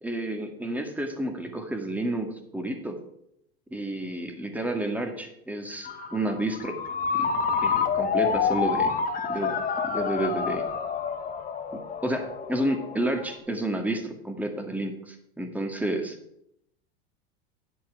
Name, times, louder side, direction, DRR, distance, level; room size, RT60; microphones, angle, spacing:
voice 1, 0.0-3.0 3.7-6.8 7.1-7.3 7.6-9.0 9.3-10.6 11.7-16.2, right 1 dB, 5° right, 4 dB, 1.8 m, -30 dB
Ringtone, 5.8-13.3, left 6 dB, 25° left, 1.6 m, -28 dB
10.0 x 7.8 x 4.7 m, 0.77 s
hypercardioid pair, 105°, 31 cm